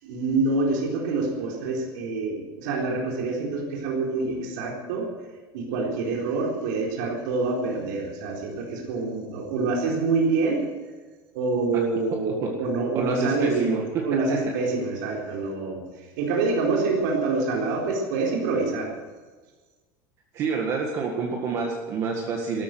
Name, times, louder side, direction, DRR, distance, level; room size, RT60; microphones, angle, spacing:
voice 1, 0.0-5.1 5.5-10.6 11.3-13.7 14.0-18.9, right 3 dB, 80° right, -1 dB, 4.0 m, -26 dB
voice 2, 13.0-13.8 20.3-22.6, right 5 dB, 30° right, 0 dB, 1.8 m, -27 dB
14.0 x 13.5 x 7.7 m, 1.3 s
cardioid pair, 180°, 10 cm